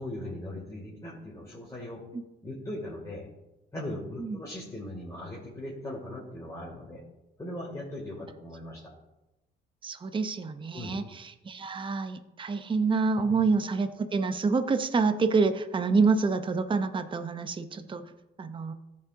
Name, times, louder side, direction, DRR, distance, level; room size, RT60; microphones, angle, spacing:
voice 1, 0.0-2.0 2.4-3.3 3.7-7.0 7.4-8.9 10.7-10.9, left 1 dB, 15° left, -6 dB, 2.2 m, -39 dB
voice 2, 9.8-18.1 18.4-18.7, right 4 dB, 25° right, 9 dB, 0.6 m, -27 dB
13.5 x 5.4 x 2.6 m, 0.97 s
cardioid pair, 90°, 20 cm